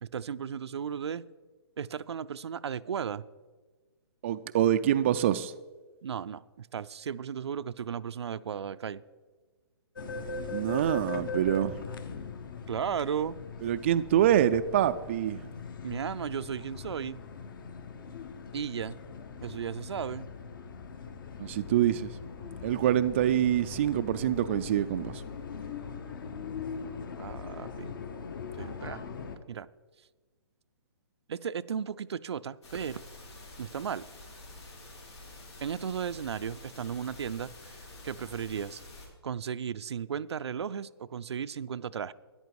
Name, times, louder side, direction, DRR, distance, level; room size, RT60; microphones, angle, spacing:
voice 1, 0.0-1.2 1.8-3.2 6.0-9.0 12.7-13.4 15.8-17.2 18.5-19.0 19.4-20.2 27.2-28.0 28.6-29.0 29.5-29.7 31.3-33.0 33.6-34.1 35.6-37.8 38.0-38.8 39.2-42.1, right 7 dB, 85° right, 13 dB, 0.5 m, -35 dB
voice 2, 4.2-5.5 10.5-11.8 13.6-15.5 21.4-22.1 22.6-25.2, right 11 dB, 30° right, 10 dB, 0.3 m, -26 dB
sound 1, 10.0-29.4, left 4 dB, 50° left, 1.2 m, -40 dB
sound 2, 32.6-39.1, left 2 dB, 85° left, 4.4 m, -48 dB
13.5 x 10.5 x 4.7 m, 1.3 s
hypercardioid pair, 160°, 14 cm